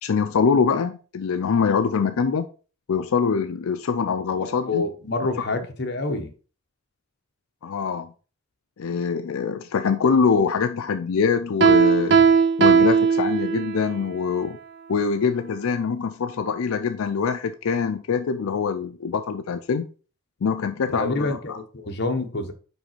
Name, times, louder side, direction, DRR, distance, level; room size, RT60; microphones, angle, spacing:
voice 1, 0.0-2.5 2.9-4.8 7.6-8.1 8.8-12.2 12.6-14.6 14.9-19.8 20.4-21.6, left 5 dB, 85° left, 0.4 m, -24 dB
voice 2, 4.5-6.3 21.0-22.5, left 2 dB, 50° left, 1.0 m, -27 dB
Piano, 11.6-13.9, right 6 dB, 55° right, 0.7 m, -17 dB
5.3 x 4.9 x 4.4 m
head